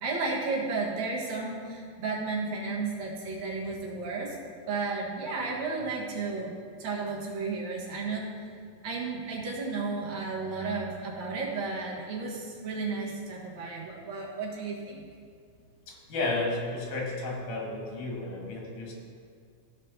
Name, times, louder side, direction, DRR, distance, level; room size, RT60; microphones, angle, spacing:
voice 1, 0.0-4.4 4.7-6.5 6.8-8.5 8.8-15.1, right 4 dB, 65° right, -3 dB, 2.7 m, -33 dB
voice 2, 15.9-18.9, left 2 dB, 80° left, -2 dB, 3.3 m, -32 dB
15.0 x 5.3 x 4.0 m, 2.2 s
omnidirectional pair, 3.6 m